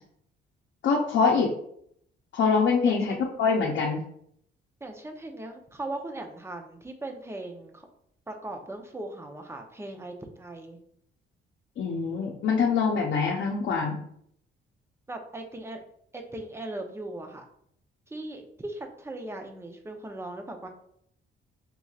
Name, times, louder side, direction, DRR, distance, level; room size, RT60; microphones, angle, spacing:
voice 1, 0.8-1.5 2.3-4.0 11.8-14.0, left 5 dB, 70° left, -3 dB, 0.7 m, -24 dB
voice 2, 2.8-3.3 4.8-7.9 8.3-10.8 15.1-15.8 16.1-17.4 18.1-20.7, right 2 dB, 15° right, 3 dB, 0.7 m, -39 dB
5.3 x 2.9 x 2.4 m, 0.69 s
cardioid pair, 90°, 20 cm